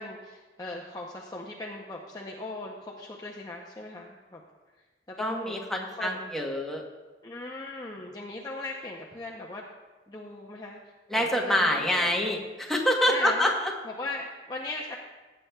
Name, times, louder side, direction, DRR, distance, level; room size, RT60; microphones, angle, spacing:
voice 1, 0.0-4.4 5.1-5.6 5.9-6.2 7.2-9.6 10.1-10.8 11.1-12.1 13.1-13.5 13.8-15.0, left 2 dB, 20° left, -2 dB, 0.6 m, -38 dB
voice 2, 5.2-6.8 11.1-13.7, left 1 dB, ahead, -1 dB, 1.1 m, -26 dB
15.5 x 8.6 x 2.3 m, 1.2 s
head